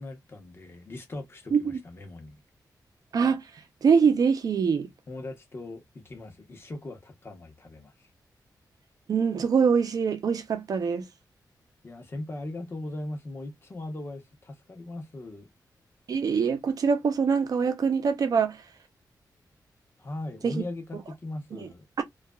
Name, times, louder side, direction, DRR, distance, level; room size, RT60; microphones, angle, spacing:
voice 1, 0.0-2.4 5.1-8.1 11.8-15.5 20.0-21.8, left 2 dB, 35° left, 0.8 m, -39 dB
voice 2, 3.1-3.4 3.8-4.9 9.1-11.0 16.1-18.6 20.4-20.6 21.5-21.7 22.0-22.1, right 6 dB, 55° right, 0.6 m, -24 dB
2.8 x 2.3 x 2.2 m
wide cardioid pair, 145°, 7 cm